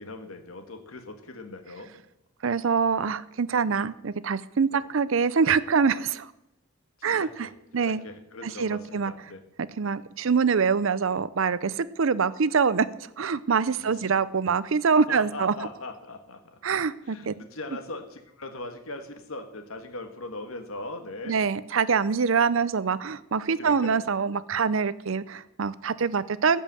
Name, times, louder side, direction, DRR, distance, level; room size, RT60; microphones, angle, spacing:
voice 1, 0.0-2.0 4.7-4.8 7.0-9.4 13.8-14.1 15.1-16.6 17.0-21.4 23.6-24.0, left 2 dB, 80° left, 6 dB, 1.6 m, -40 dB
voice 2, 2.4-6.3 7.0-7.5 7.7-8.0 8.4-9.1 9.8-12.9 13.2-15.5 16.6-17.3 21.3-26.6, right 5 dB, 70° right, 17 dB, 0.5 m, -25 dB
15.0 x 5.5 x 7.6 m, 0.91 s
head